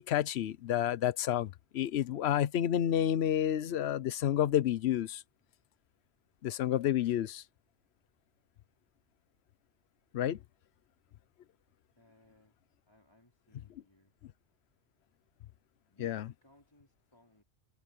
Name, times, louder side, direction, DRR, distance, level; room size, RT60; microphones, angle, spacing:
voice 1, 0.0-5.2 6.4-7.4 10.1-10.4 16.0-16.3, left 11 dB, 80° left, 0.9 m, -30 dB
voice 2, 12.0-12.6 12.9-14.1 15.9-17.4, left 1 dB, 25° left, 4.7 m, -63 dB
omnidirectional pair, 1.1 m